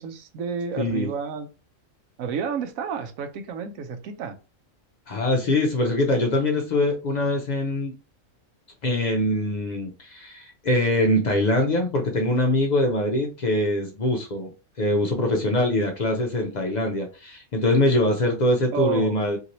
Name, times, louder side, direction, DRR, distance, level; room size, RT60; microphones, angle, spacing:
voice 1, 0.0-1.5 2.2-4.4 18.7-19.3, right 7 dB, 75° right, 8 dB, 1.0 m, -30 dB
voice 2, 0.8-1.1 5.1-7.9 8.8-14.5 14.8-19.4, left 1 dB, 70° left, 2 dB, 0.4 m, -23 dB
2.8 x 2.6 x 2.9 m, 0.31 s
omnidirectional pair, 1.4 m